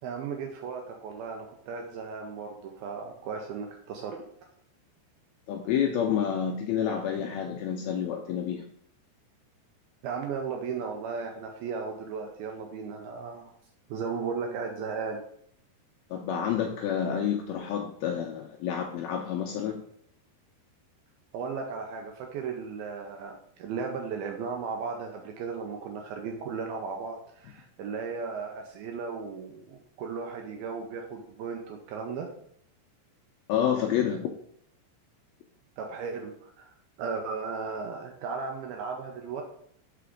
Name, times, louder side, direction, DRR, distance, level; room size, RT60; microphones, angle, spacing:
voice 1, 0.0-4.3 10.0-13.5 13.9-15.2 21.3-32.3 35.8-36.7 37.0-39.4, right 5 dB, 80° right, 2 dB, 2.2 m, -36 dB
voice 2, 5.5-8.6 16.1-19.8 33.5-34.3, left 8 dB, 85° left, 1 dB, 2.2 m, -29 dB
5.8 x 5.0 x 5.1 m, 0.67 s
omnidirectional pair, 5.0 m